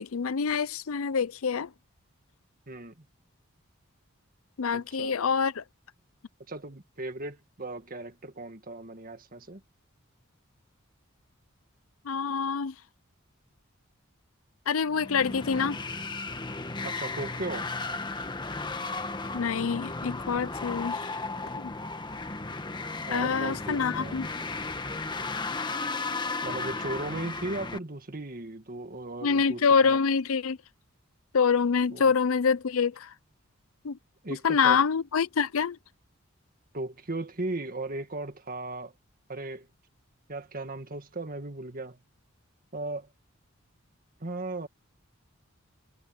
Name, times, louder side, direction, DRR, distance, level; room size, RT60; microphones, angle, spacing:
voice 1, 0.0-1.7 4.6-5.6 12.1-12.7 14.7-15.8 19.3-21.0 21.6-21.7 23.1-24.3 29.2-30.6 31.3-33.1 33.8-34.0 34.4-35.8, left 6 dB, 85° left, 0.6 m, -26 dB
voice 2, 2.7-3.1 4.7-5.2 6.5-9.6 16.8-17.7 22.9-24.3 26.4-30.0 31.9-32.0 34.2-34.8 36.7-38.9 39.3-39.7 40.3-42.0 42.7-43.1 44.2-44.7, right 2 dB, 45° right, 1.9 m, -37 dB
sound 1, 14.9-27.8, left 3 dB, 20° left, 1.3 m, -35 dB
head